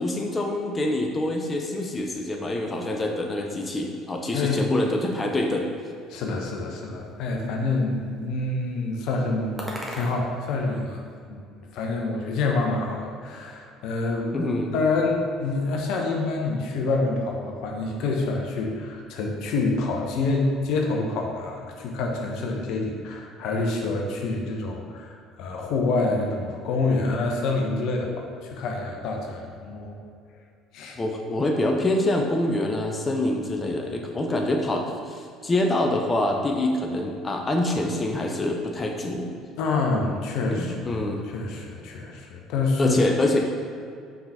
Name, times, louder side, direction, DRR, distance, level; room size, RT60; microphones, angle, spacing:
voice 1, 0.0-5.7 14.3-14.7 31.0-39.3 40.5-41.2 42.8-43.4, left 1 dB, 25° left, 2 dB, 0.8 m, -25 dB
sound 1, 3.9-11.2, equal, 5° right, 1.6 m, -44 dB
voice 2, 6.1-11.0 11.3-14.5 14.7-30.0 30.7-31.0 39.6-41.0 41.3-43.0, left 3 dB, 60° left, 1 dB, 0.9 m, -27 dB
5.8 x 5.0 x 4.2 m, 2.4 s
hypercardioid pair, 60°, 0 cm